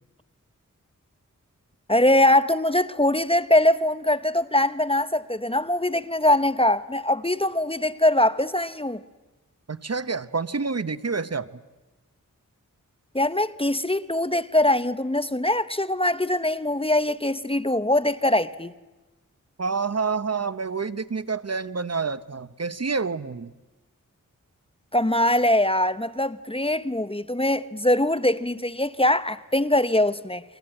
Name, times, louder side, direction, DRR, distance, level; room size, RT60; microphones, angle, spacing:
voice 1, 1.9-9.0 13.1-18.7 24.9-30.4, left 1 dB, 15° left, 0.9 m, -22 dB
voice 2, 9.7-11.5 19.6-23.5, right 4 dB, 50° right, 0.9 m, -28 dB
29.5 x 22.5 x 8.9 m
wide cardioid pair, 45°, 33 cm